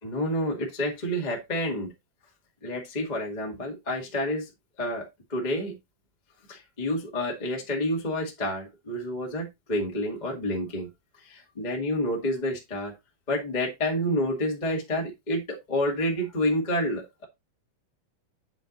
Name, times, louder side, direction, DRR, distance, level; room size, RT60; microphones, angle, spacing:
voice 1, 0.0-1.9 2.6-4.5 4.8-5.8 6.5-10.9 11.2-12.9 13.3-17.2, left 1 dB, 20° left, 0 dB, 1.1 m, -29 dB
8.3 x 4.4 x 3.9 m, 0.21 s
omnidirectional pair, 4.2 m